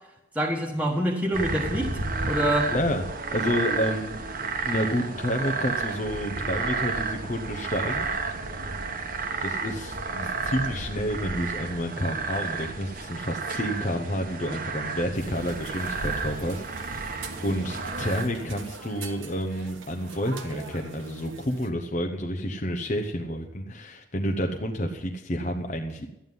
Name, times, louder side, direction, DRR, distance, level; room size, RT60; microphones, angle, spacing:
voice 1, 0.3-1.9 2.3-2.7, equal, 5° right, -1 dB, 1.4 m, -25 dB
sound 1, 1.3-18.2, right 4 dB, 45° right, 1.1 m, -31 dB
voice 2, 2.7-3.0 3.3-8.1 9.4-26.1, equal, 35° left, 3 dB, 0.8 m, -30 dB
sound 2, 15.1-21.7, right 4 dB, 70° right, 1.2 m, -43 dB
12.5 x 9.5 x 5.4 m, 0.91 s
head